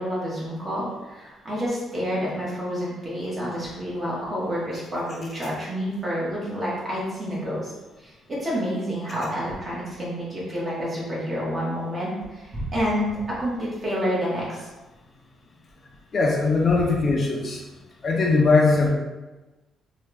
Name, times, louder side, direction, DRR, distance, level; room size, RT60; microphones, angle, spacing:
voice 1, 0.0-7.7 8.0-14.7, equal, 30° right, -7 dB, 1.4 m, -29 dB
voice 2, 16.1-17.6 18.0-18.9, left 3 dB, 45° left, -1 dB, 0.5 m, -20 dB
3.4 x 2.3 x 3.2 m, 1.1 s
cardioid pair, 100°, 0 cm